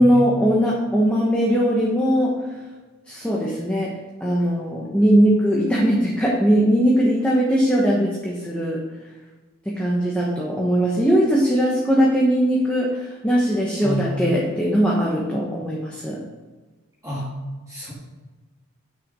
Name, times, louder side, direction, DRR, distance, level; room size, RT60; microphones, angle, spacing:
voice 1, 0.0-2.4 3.1-3.9 4.2-8.8 9.6-16.2, equal, 5° left, -4 dB, 1.2 m, -20 dB
voice 2, 13.8-14.2 17.0-17.4 17.7-17.9, equal, 15° right, -7 dB, 1.8 m, -28 dB
8.6 x 6.7 x 5.4 m, 1.3 s
head